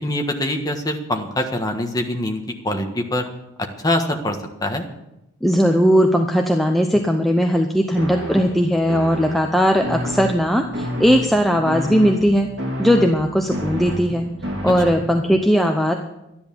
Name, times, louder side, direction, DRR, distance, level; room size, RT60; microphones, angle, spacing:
voice 1, 0.0-3.3 3.6-4.8, left 1 dB, 20° left, 4 dB, 1.4 m, -24 dB
voice 2, 5.4-12.5 12.8-14.2 14.6-15.9, equal, ahead, 3 dB, 0.7 m, -18 dB
sound 1, 8.0-15.4, equal, 55° right, 2.4 m, -30 dB
12.5 x 10.5 x 7.0 m, 0.90 s
head